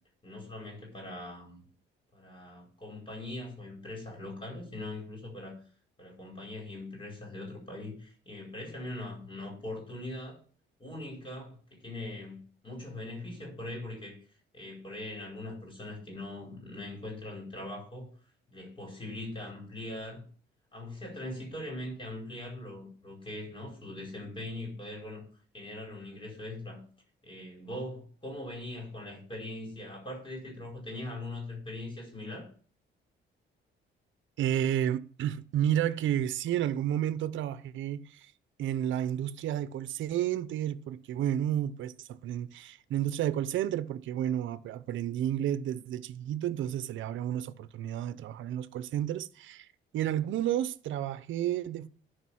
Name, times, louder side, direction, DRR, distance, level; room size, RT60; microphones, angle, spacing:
voice 1, 0.2-1.6 2.1-5.6 6.0-10.4 10.8-14.2 14.5-18.1 18.5-20.2 20.7-25.2 25.5-26.8 27.2-32.5, left 1 dB, 25° left, 4.8 m, -41 dB
voice 2, 34.4-38.3 38.6-49.7 49.9-51.9, right 11 dB, 75° right, 0.7 m, -31 dB
11.5 x 5.0 x 5.7 m
cardioid pair, 90°, 20 cm